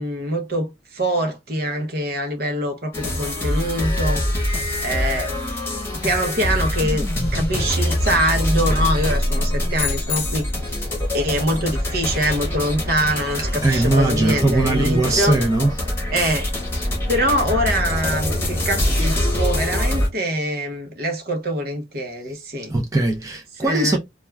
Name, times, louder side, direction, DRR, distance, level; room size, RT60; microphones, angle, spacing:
voice 1, 0.0-4.2 4.8-5.3 6.0-10.8 11.1-15.3 16.1-16.5 17.1-22.7 23.6-24.0, equal, 55° right, 0.8 m, -24 dB
sound 1, 2.9-20.1, left 1 dB, 15° left, 0.9 m, -24 dB
sound 2, 9.7-10.9, left 12 dB, 90° left, 0.4 m, -30 dB
voice 2, 13.6-15.7 22.7-24.0, right 2 dB, 20° right, 0.5 m, -20 dB
2.3 x 2.3 x 3.1 m
head